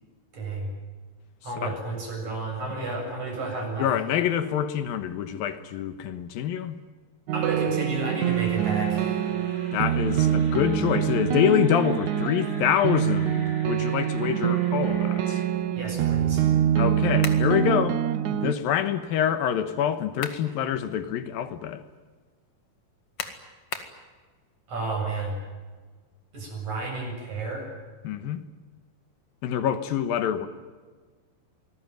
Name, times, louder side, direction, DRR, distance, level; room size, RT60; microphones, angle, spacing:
voice 1, 0.3-0.7 1.4-3.9 7.3-9.2 15.8-16.5 24.7-25.4 26.3-27.7, right 3 dB, 50° right, 8.8 m, -31 dB
voice 2, 3.8-6.8 9.7-15.4 16.8-18.0 18.3-21.8 28.0-28.4 29.4-30.5, left 9 dB, 80° left, 2.9 m, -26 dB
sound 1, 7.3-18.5, right 10 dB, 70° right, 2.0 m, -25 dB
sound 2, 8.2-15.5, left 2 dB, 25° left, 5.2 m, -47 dB
sound 3, 17.2-17.5 19.9-20.5 21.0-21.1 23.2-24.0, left 6 dB, 45° left, 2.5 m, -35 dB
27.5 x 20.0 x 9.3 m
omnidirectional pair, 4.2 m